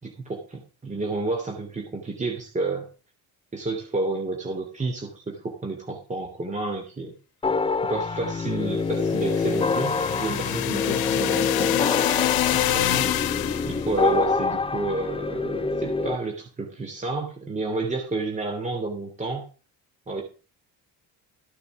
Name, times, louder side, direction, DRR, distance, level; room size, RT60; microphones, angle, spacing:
voice 1, 0.0-2.9 3.5-7.1 7.8-11.8 12.5-13.2 13.6-19.5 20.1-20.2, right 3 dB, 20° right, 2 dB, 2.9 m, -30 dB
sound 1, 7.4-16.2, left 4 dB, 15° left, 0.7 m, -26 dB
sound 2, 8.9-13.9, left 14 dB, 75° left, 1.3 m, -26 dB
15.0 x 6.7 x 6.0 m, 0.36 s
cardioid pair, 135°, 36 cm